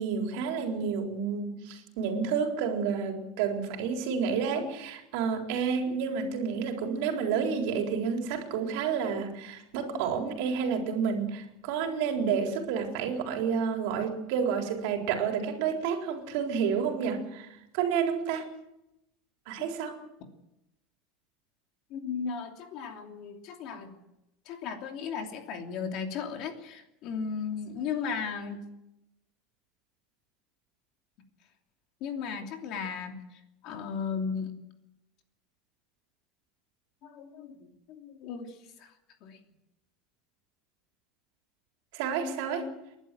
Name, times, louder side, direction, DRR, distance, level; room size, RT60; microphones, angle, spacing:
voice 1, 0.0-17.5 17.7-18.5 19.5-20.0 41.9-42.7, right 6 dB, 65° right, 3 dB, 4.0 m, -30 dB
voice 2, 21.9-24.0 24.4-28.6 32.0-34.5 37.0-37.6 37.9-38.9 39.2-39.4, left 6 dB, 45° left, 4 dB, 2.9 m, -36 dB
30.0 x 11.5 x 7.7 m, 0.89 s
cardioid pair, 170°, 0 cm